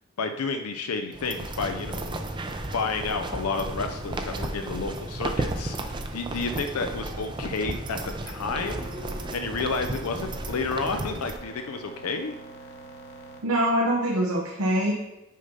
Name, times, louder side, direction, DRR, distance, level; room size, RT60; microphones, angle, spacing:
voice 1, 0.2-2.2 2.7-8.9 9.3-12.4, left 4 dB, 90° left, 6 dB, 0.5 m, -31 dB
sound 1, 1.1-11.4, right 2 dB, 20° right, 0.5 m, -34 dB
sound 2, 8.4-13.4, right 2 dB, 50° left, 1.5 m, -45 dB
voice 2, 13.4-14.9, right 1 dB, 90° right, -1 dB, 1.0 m, -24 dB
6.4 x 5.5 x 5.2 m, 0.99 s
head